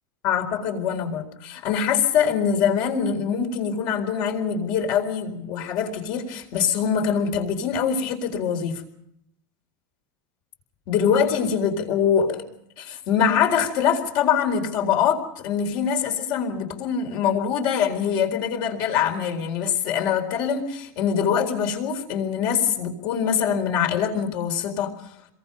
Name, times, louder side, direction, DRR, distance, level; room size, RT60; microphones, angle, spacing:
voice 1, 0.2-8.8 10.9-12.4 12.8-24.9, left 7 dB, 40° left, 4 dB, 4.2 m, -24 dB
29.0 x 22.5 x 5.4 m, 0.75 s
supercardioid pair, 175°, 11 cm